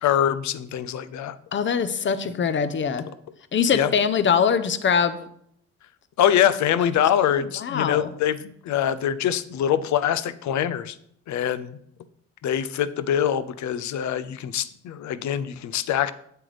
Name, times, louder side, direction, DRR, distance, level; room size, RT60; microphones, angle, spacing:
voice 1, 0.0-1.3 3.7-3.9 6.2-11.0 11.3-11.8 12.4-16.1, left 10 dB, 70° left, 14 dB, 0.6 m, -24 dB
voice 2, 1.5-3.1 3.5-5.2 6.8-6.9 7.3-8.1, left 6 dB, 40° left, 12 dB, 0.7 m, -23 dB
7.8 x 7.6 x 3.3 m, 0.69 s
cardioid pair, 90°, 30 cm